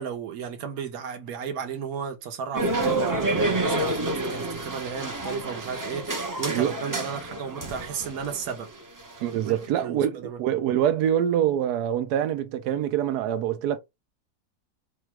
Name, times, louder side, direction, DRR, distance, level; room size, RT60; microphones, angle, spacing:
voice 1, 0.0-8.7 9.2-10.4, right 7 dB, 70° right, 1.3 m, -34 dB
sound 1, 2.5-9.7, right 2 dB, 25° right, 0.4 m, -29 dB
voice 2, 9.2-13.8, right 10 dB, 85° right, 1.2 m, -25 dB
4.5 x 2.3 x 4.6 m
omnidirectional pair, 1.6 m